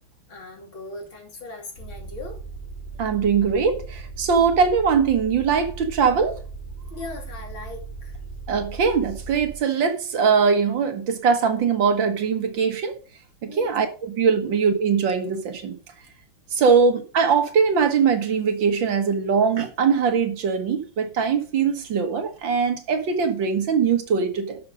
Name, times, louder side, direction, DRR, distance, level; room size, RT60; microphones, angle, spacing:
voice 1, 0.3-2.4 2.9-3.0 6.9-8.2 13.5-13.7, left 2 dB, 85° left, 3.6 m, -39 dB
sound 1, 1.8-9.6, right 4 dB, 55° left, 3.3 m, -37 dB
voice 2, 3.0-6.4 8.5-13.0 13.4-15.8 16.5-24.6, right 6 dB, 70° right, 2.1 m, -21 dB
11.5 x 6.4 x 5.0 m
omnidirectional pair, 2.2 m